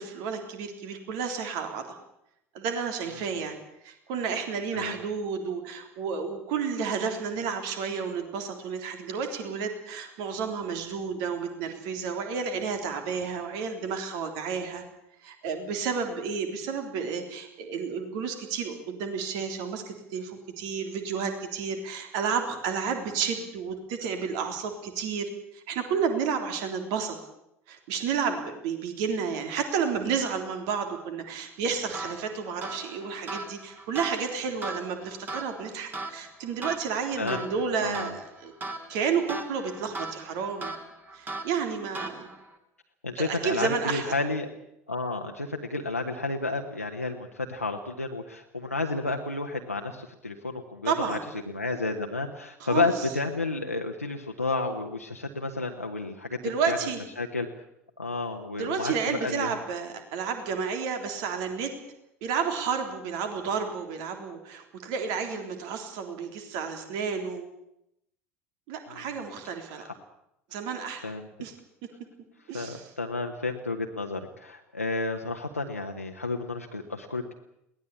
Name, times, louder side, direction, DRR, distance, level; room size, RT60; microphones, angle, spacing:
voice 1, 0.0-2.0 2.5-3.6 3.8-14.8 15.2-27.2 27.7-38.5 38.9-40.7 41.1-42.3 43.2-44.2 50.9-51.2 52.6-52.9 56.4-57.0 58.6-61.7 62.2-67.5 68.7-69.9 70.5-71.1 71.4-71.5 72.5-72.9, right 6 dB, 55° right, 6 dB, 3.6 m, -31 dB
sound 1, 31.9-42.6, right 2 dB, 25° right, 3.6 m, -39 dB
voice 2, 37.8-38.1 43.0-44.5 44.9-51.2 51.5-56.4 56.7-56.8 57.2-57.5 58.0-59.5 68.9-69.1 69.7-69.9 71.0-71.3 72.5-77.3, left 3 dB, 90° left, 2 dB, 1.3 m, -31 dB
22.0 x 18.0 x 8.6 m, 0.82 s
figure-of-eight pair, 70°, 8 cm